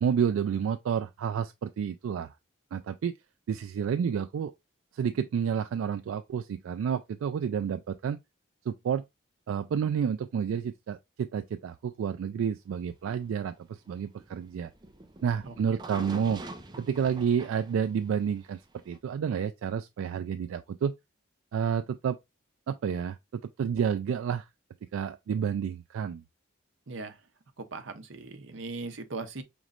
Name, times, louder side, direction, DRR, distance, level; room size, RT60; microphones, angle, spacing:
voice 1, 0.0-2.3 2.7-3.1 3.5-4.5 4.9-8.2 8.7-9.0 9.5-14.7 15.2-16.4 16.8-18.6 18.9-20.9 21.5-22.2 22.7-24.5 24.9-26.2, right 7 dB, 90° right, 0.3 m, -30 dB
sound 1, 13.1-19.0, right 2 dB, 20° right, 0.5 m, -45 dB
voice 2, 26.9-27.2 27.6-29.4, right 3 dB, 70° right, 0.7 m, -39 dB
5.1 x 3.0 x 2.3 m
head